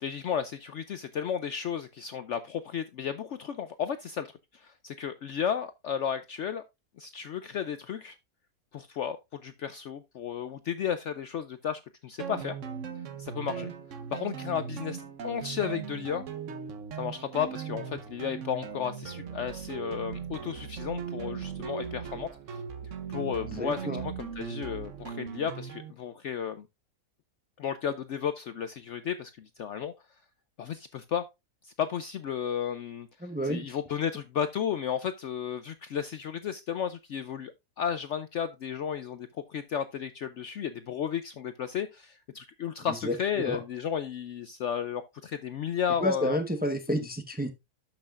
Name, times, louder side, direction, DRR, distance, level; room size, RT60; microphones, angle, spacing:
voice 1, 0.0-6.6 7.0-8.2 8.7-12.6 13.2-13.7 14.1-16.3 17.0-22.6 23.1-26.7 27.6-29.9 30.6-31.2 31.6-33.1 33.5-46.4, left 8 dB, 65° left, 0.7 m, -33 dB
sound 1, 12.2-25.9, right 7 dB, 55° right, 1.2 m, -38 dB
voice 2, 23.5-24.0 33.2-33.8 42.9-43.6 46.0-47.5, equal, 10° right, 0.7 m, -31 dB
12.0 x 6.0 x 2.4 m
omnidirectional pair, 1.7 m